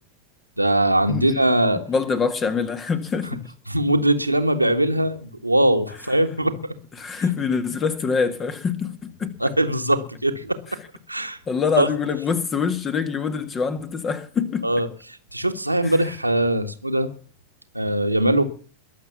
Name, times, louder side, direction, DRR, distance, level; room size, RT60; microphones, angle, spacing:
voice 1, 0.6-1.8 3.7-6.6 9.4-10.6 11.1-11.4 11.8-11.9 14.6-14.9 15.3-17.1 17.7-18.4, right 1 dB, 85° right, 1.7 m, -21 dB
voice 2, 1.9-3.4 7.0-9.3 11.5-14.7 15.8-15.9, left 5 dB, 20° left, 1.9 m, -25 dB
22.0 x 7.5 x 7.3 m
figure-of-eight pair, 90°, 0 cm